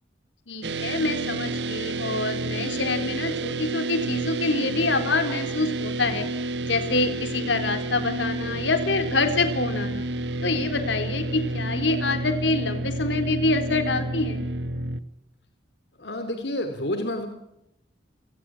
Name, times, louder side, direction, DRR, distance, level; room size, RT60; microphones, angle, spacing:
voice 1, 0.5-6.3 6.6-10.1 10.4-14.4, left 3 dB, 80° left, 8 dB, 3.8 m, -26 dB
sound 1, 0.6-15.0, right 2 dB, 70° right, 1.3 m, -30 dB
voice 2, 16.0-17.3, left 1 dB, 65° left, 7 dB, 3.1 m, -29 dB
29.0 x 19.0 x 6.1 m, 0.81 s
head